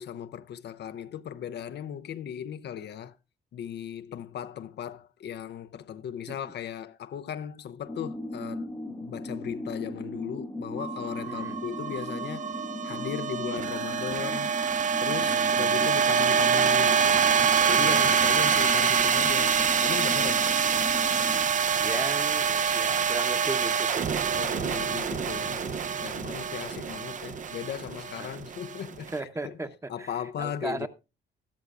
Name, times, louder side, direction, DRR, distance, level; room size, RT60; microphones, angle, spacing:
voice 1, 0.0-3.2 3.5-12.5 12.8-14.5 15.0-17.3 17.7-20.4 24.3-29.1 29.4-29.6 29.9-30.9, left 9 dB, 60° left, 0.5 m, -37 dB
sound 1, 7.9-21.4, left 1 dB, 10° left, 1.0 m, -38 dB
sound 2, 10.8-29.1, right 7 dB, 40° right, 0.5 m, -26 dB
voice 2, 11.3-11.6 15.1-16.0 17.8-18.2 20.2-20.6 21.8-24.1 24.7-24.9 26.0-26.1 28.2-28.5 29.1-30.9, right 2 dB, 15° right, 0.9 m, -37 dB
13.0 x 12.5 x 2.4 m
cardioid pair, 90°, 20 cm